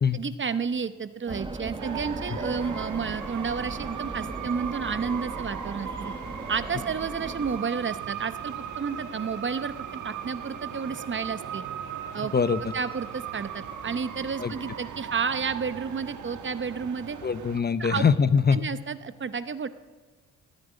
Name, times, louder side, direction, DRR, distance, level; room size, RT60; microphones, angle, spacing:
voice 1, 0.1-6.1 6.5-11.6 12.1-12.3 12.7-17.2 17.8-18.0 18.5-19.7, right 6 dB, 35° right, 13 dB, 0.8 m, -31 dB
sound 1, 1.3-7.6, right 2 dB, 15° right, 1.1 m, -38 dB
sound 2, 1.8-17.6, right 8 dB, 65° right, 1.4 m, -38 dB
voice 2, 17.2-18.6, left 6 dB, 30° left, 14 dB, 0.7 m, -22 dB
15.5 x 9.4 x 9.9 m, 1.4 s
cardioid pair, 75°, 33 cm